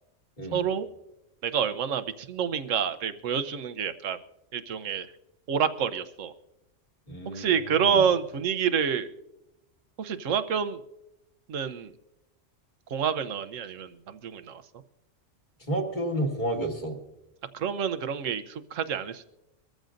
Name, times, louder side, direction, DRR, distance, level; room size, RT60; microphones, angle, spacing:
voice 1, 0.5-0.9 1.4-4.2 4.5-5.1 5.5-6.3 7.3-9.1 10.0-10.8 11.5-11.9 12.9-14.6 17.5-19.3, right 7 dB, 80° right, 12 dB, 1.2 m, -28 dB
voice 2, 7.1-8.0 15.7-17.0, right 1 dB, 35° left, 0 dB, 2.3 m, -31 dB
23.5 x 14.0 x 2.6 m, 0.88 s
omnidirectional pair, 1.3 m